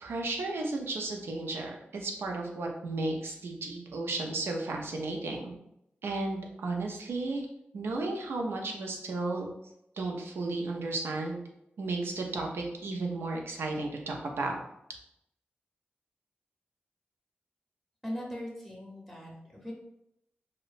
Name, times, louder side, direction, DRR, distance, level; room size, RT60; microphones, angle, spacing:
voice 1, 0.0-5.5 6.0-7.5 7.7-9.5 10.0-11.4 11.8-14.6, right 2 dB, 90° right, 1 dB, 0.4 m, -34 dB
voice 2, 18.0-19.7, equal, 5° right, -3 dB, 0.8 m, -40 dB
2.8 x 2.0 x 2.4 m, 0.80 s
cardioid pair, 65°, 4 cm